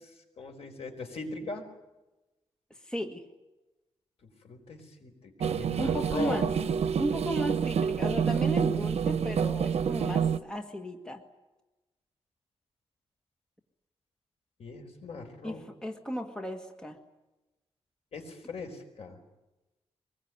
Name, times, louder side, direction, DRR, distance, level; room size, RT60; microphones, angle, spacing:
voice 1, 0.4-1.6 4.4-5.1 5.4-6.5 14.6-15.6 18.1-19.2, left 3 dB, 70° left, 4 dB, 4.8 m, -39 dB
voice 2, 2.9-3.2 5.8-6.5 7.0-11.2 15.4-17.0, equal, 5° left, 5 dB, 1.6 m, -35 dB
sound 1, 5.4-10.4, right 7 dB, 80° right, 0.9 m, -28 dB
24.0 x 21.0 x 9.5 m, 1.0 s
wide cardioid pair, 165°, 11 cm